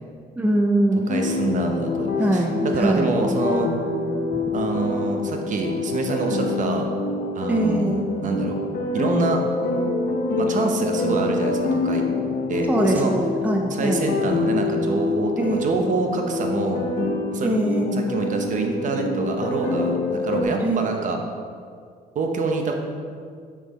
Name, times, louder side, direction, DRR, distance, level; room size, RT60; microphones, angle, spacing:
voice 1, 0.4-1.1 2.2-3.2 4.3-4.4 7.5-8.0 12.7-14.0 15.4-15.7 17.4-18.0 20.6-21.1, right 1 dB, 10° right, 1 dB, 0.6 m, -22 dB
sound 1, 1.1-20.4, left 3 dB, 65° left, 0.9 m, -26 dB
voice 2, 1.1-3.7 4.5-6.9 7.3-8.6 8.9-9.4 10.4-12.0 12.5-13.1 13.7-16.9 17.3-17.5 17.9-21.2 22.1-22.7, right 3 dB, 50° right, 3 dB, 0.9 m, -26 dB
5.9 x 5.8 x 4.1 m, 2.1 s
cardioid pair, 110°, 17 cm